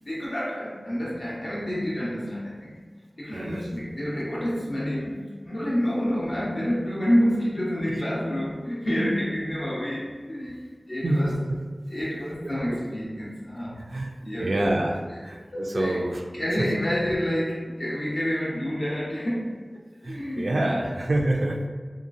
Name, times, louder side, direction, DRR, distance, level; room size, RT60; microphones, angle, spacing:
voice 1, 0.0-2.8 3.2-11.4 11.9-14.8 15.5-16.0 16.3-19.6 20.0-20.9, equal, 60° left, -7 dB, 0.9 m, -28 dB
voice 2, 3.3-3.6 7.9-8.0 11.0-11.6 12.7-12.8 13.8-14.1 14.4-16.2 20.0-21.7, right 1 dB, 85° right, 1 dB, 0.3 m, -27 dB
2.9 x 2.4 x 2.5 m, 1.5 s
wide cardioid pair, 55°, 0 cm